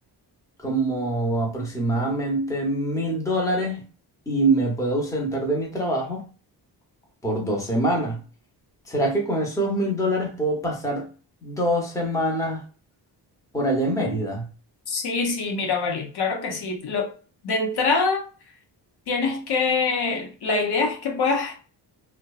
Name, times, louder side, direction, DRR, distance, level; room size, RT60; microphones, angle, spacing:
voice 1, 0.6-3.8 4.3-6.2 7.2-8.2 8.9-11.1 11.4-12.6 13.5-14.5, right 1 dB, 10° left, 0.7 m, -24 dB
voice 2, 14.9-17.1 17.4-18.2 19.1-21.6, left 4 dB, 65° left, 0.7 m, -24 dB
2.7 x 2.1 x 2.3 m
cardioid pair, 105°, 42 cm